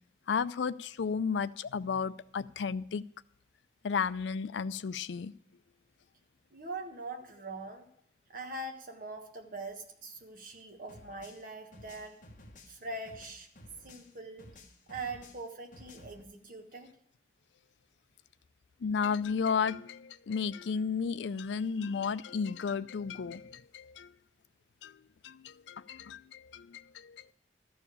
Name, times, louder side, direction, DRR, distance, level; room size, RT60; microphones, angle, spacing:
voice 1, 0.3-3.0 3.8-5.3 18.8-24.1 24.8-25.0 25.2-27.3, left 6 dB, 75° left, 15 dB, 0.4 m, -33 dB
voice 2, 6.5-7.9 8.3-12.2 12.7-13.5 13.8-14.5 14.9-16.9, right 2 dB, 50° right, 4 dB, 1.4 m, -42 dB
sound 1, 10.9-14.1 14.4-16.2, left 1 dB, 45° left, 1.2 m, -54 dB
13.0 x 4.8 x 8.4 m, 0.68 s
head